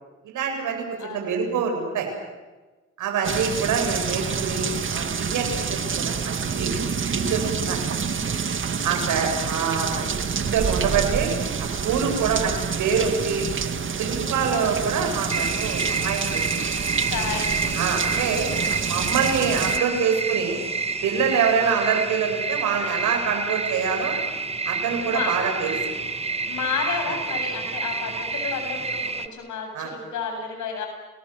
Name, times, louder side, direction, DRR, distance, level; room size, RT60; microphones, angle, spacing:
voice 1, 0.2-2.1 3.0-6.7 7.1-7.8 8.8-11.3 11.6-13.4 14.0-16.7 17.7-18.5 18.8-20.6 21.0-24.1 24.6-25.8 29.7-29.9, right 6 dB, 80° right, 3 dB, 7.7 m, -25 dB
voice 2, 1.0-1.4 3.2-3.6 5.8-6.1 8.9-9.3 14.5-14.9 16.9-18.0 18.4-18.8 19.7-20.0 21.6-21.9 25.0-25.3 26.5-30.9, left 5 dB, 75° left, 4 dB, 7.9 m, -32 dB
sound 1, 3.2-19.8, right 6 dB, 40° right, 2.1 m, -27 dB
sound 2, 15.3-29.3, right 4 dB, 20° right, 1.5 m, -29 dB
29.0 x 20.5 x 7.7 m, 1.2 s
cardioid pair, 90°, 30 cm